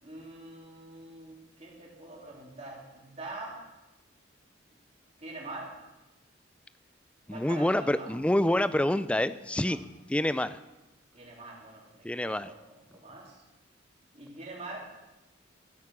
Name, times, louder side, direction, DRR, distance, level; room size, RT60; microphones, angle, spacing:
voice 1, 0.0-3.6 5.2-5.7 7.3-8.1 9.4-9.7 11.1-12.6 12.9-13.4 14.1-14.8, right 2 dB, 35° right, -3 dB, 3.2 m, -44 dB
voice 2, 7.3-9.8 10.1-10.6 12.0-12.5, left 1 dB, 5° left, 14 dB, 0.3 m, -27 dB
14.5 x 8.2 x 6.1 m, 1.0 s
head